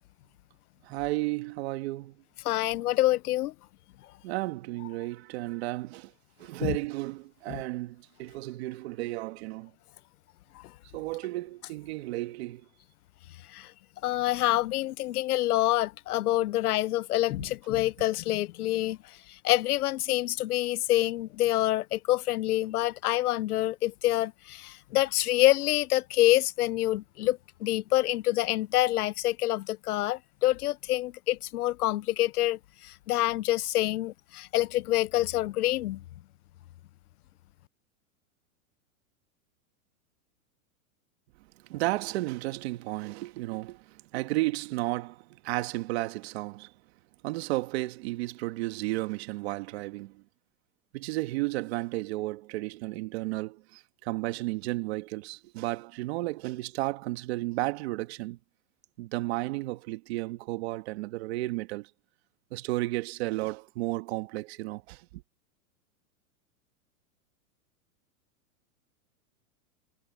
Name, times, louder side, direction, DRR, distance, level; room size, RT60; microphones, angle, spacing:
voice 1, 0.8-2.2 4.2-6.1 6.4-9.7 10.9-12.7 41.7-46.7 47.2-50.1 50.9-58.4 59.0-61.9 62.5-65.2, right 19 dB, 45° right, 1.8 m, -33 dB
voice 2, 2.4-3.5 6.6-6.8 10.6-10.7 13.5-13.7 14.0-19.0 19.3-36.0, left 15 dB, 90° left, 0.7 m, -27 dB
supercardioid pair, 160°, 44 cm